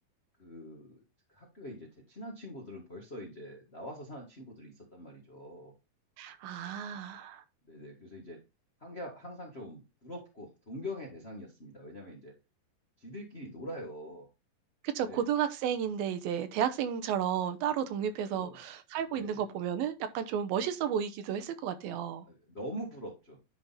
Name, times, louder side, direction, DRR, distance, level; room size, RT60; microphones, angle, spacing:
voice 1, 0.4-1.0 1.3-5.7 7.7-8.4 8.8-12.3 13.0-14.3 15.0-15.2 18.3-18.6 19.1-19.4 22.2-23.4, equal, 65° left, 0.6 m, -44 dB
voice 2, 6.2-7.4 14.8-22.3, right 9 dB, 75° right, 2.5 m, -32 dB
10.5 x 3.7 x 4.1 m
omnidirectional pair, 4.4 m